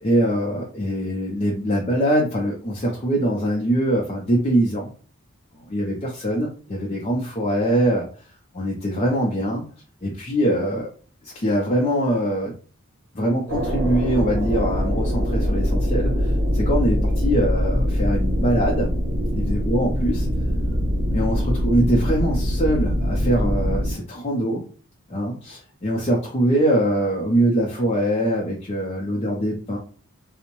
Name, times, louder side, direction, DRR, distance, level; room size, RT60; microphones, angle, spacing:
voice 1, 0.0-4.9 5.7-8.1 8.5-9.6 10.0-10.9 11.2-12.5 13.1-18.9 19.3-20.3 21.1-24.6 25.1-29.8, right 1 dB, 30° left, -2 dB, 0.4 m, -23 dB
sound 1, 13.5-23.9, equal, 70° right, 1.0 m, -23 dB
2.6 x 2.0 x 2.9 m, 0.40 s
head